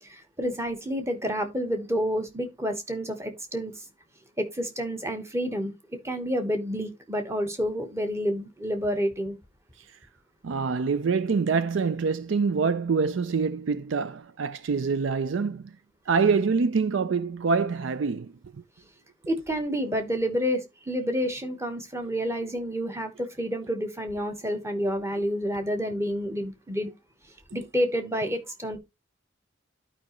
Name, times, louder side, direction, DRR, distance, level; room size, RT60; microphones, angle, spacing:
voice 1, 0.0-3.8 4.4-5.7 6.0-9.3 19.3-26.9 27.5-28.8, equal, 15° right, 1.1 m, -29 dB
voice 2, 10.4-15.8 16.1-18.6, right 5 dB, 60° right, 0.4 m, -25 dB
12.0 x 4.9 x 3.0 m
head